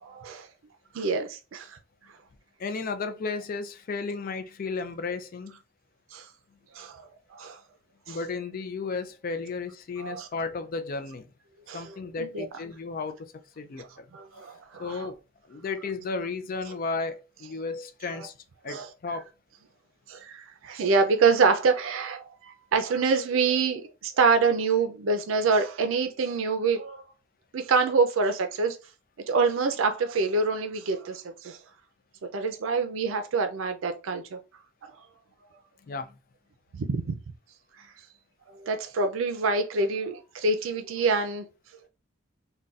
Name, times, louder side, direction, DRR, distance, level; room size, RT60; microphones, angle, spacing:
voice 1, 0.0-0.5 0.9-1.8 6.1-6.3 6.7-7.6 8.1-8.2 10.0-10.3 11.7-12.4 13.8-13.9 14.1-15.1 18.1-18.3 18.6-18.9 20.1-27.1 27.5-28.8 29.3-31.6 32.3-34.4 36.7-37.2 38.5-41.5, right 4 dB, 90° right, 0.4 m, -26 dB
voice 2, 2.6-5.6 8.1-11.3 11.7-14.1 14.8-15.2 15.5-18.3 18.6-19.3 35.9-36.1, left 4 dB, 45° left, 0.4 m, -34 dB
3.9 x 2.2 x 2.4 m
head